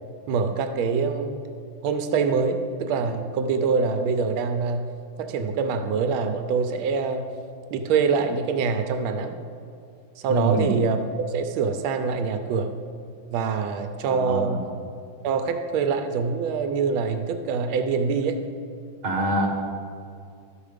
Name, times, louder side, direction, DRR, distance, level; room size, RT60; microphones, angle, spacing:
voice 1, 0.3-1.4 1.8-4.9 5.2-7.3 7.7-9.4 10.2-12.7 13.3-14.7 15.2-18.4, right 5 dB, 90° right, 7 dB, 1.5 m, -25 dB
voice 2, 10.3-10.7 14.0-14.6 19.0-19.5, right 2 dB, 40° right, 0 dB, 1.6 m, -25 dB
13.0 x 5.2 x 5.0 m, 2.4 s
omnidirectional pair, 2.2 m